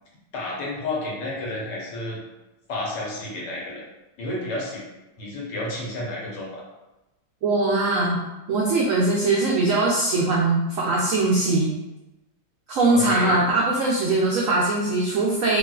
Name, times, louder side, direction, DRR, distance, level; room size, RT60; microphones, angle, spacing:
voice 1, 0.3-2.2 2.7-3.8 4.2-4.8 5.2-6.6 12.9-13.4, left 2 dB, 75° left, -4 dB, 1.5 m, -31 dB
voice 2, 7.4-8.2 8.5-11.7 12.7-15.6, right 2 dB, 85° right, -4 dB, 0.7 m, -21 dB
3.7 x 2.4 x 2.3 m, 1.0 s
omnidirectional pair, 1.9 m